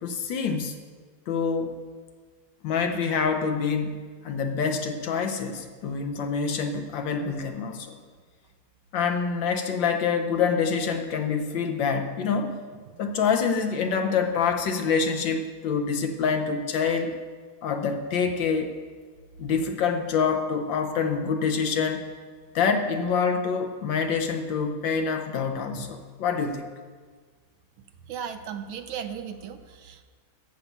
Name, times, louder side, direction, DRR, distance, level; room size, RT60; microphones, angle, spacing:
voice 1, 0.0-0.7 1.3-1.9 2.6-8.0 8.9-12.6 13.0-17.1 17.6-18.7 19.4-22.0 22.5-26.7, left 5 dB, 70° left, 6 dB, 1.6 m, -26 dB
voice 2, 28.1-30.0, right 8 dB, 90° right, 8 dB, 1.6 m, -36 dB
14.5 x 5.5 x 7.2 m, 1.6 s
omnidirectional pair, 2.2 m